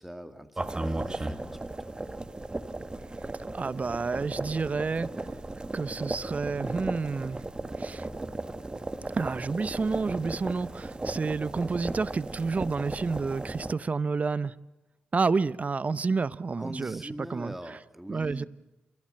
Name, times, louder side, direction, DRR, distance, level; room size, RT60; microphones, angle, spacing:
voice 1, 0.0-2.0 16.6-18.5, equal, 5° right, 2.3 m, -42 dB
sound 1, 0.6-13.7, right 2 dB, 25° right, 1.5 m, -36 dB
voice 2, 3.5-5.3 5.7-7.4 7.8-8.1 9.1-14.5 15.1-17.8 18.1-18.4, right 4 dB, 40° right, 0.7 m, -30 dB
29.0 x 15.5 x 7.7 m
supercardioid pair, 45°, 4 cm